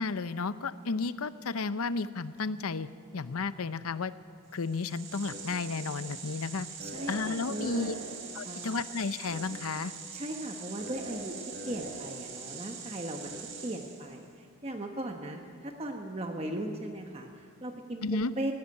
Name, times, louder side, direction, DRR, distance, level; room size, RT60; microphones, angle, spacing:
voice 1, 0.0-2.9 3.1-4.1 4.5-6.7 7.1-7.9 8.3-9.9 18.0-18.3, left 4 dB, 75° left, 14 dB, 0.7 m, -32 dB
sound 1, 4.6-14.2, right 4 dB, 55° right, 3.5 m, -42 dB
voice 2, 6.8-8.1 8.4-8.8 10.1-11.4 11.7-13.3 13.6-18.1 18.4-18.5, right 1 dB, 25° right, 3 dB, 1.1 m, -38 dB
18.5 x 16.0 x 9.7 m, 2.3 s
head